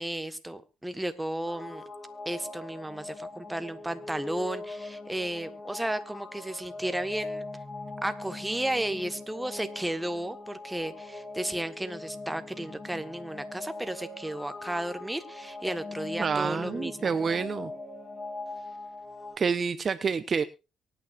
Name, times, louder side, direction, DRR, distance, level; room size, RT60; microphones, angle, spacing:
voice 1, 0.0-1.8 2.2-7.5 8.0-17.1, right 1 dB, 5° right, 9 dB, 1.5 m, -33 dB
sound 1, 1.4-19.4, left 2 dB, 30° left, 3.3 m, -41 dB
voice 2, 16.2-17.7 19.4-20.4, right 5 dB, 45° right, 13 dB, 0.8 m, -28 dB
24.0 x 9.4 x 2.6 m, 0.28 s
cardioid pair, 90°, 0 cm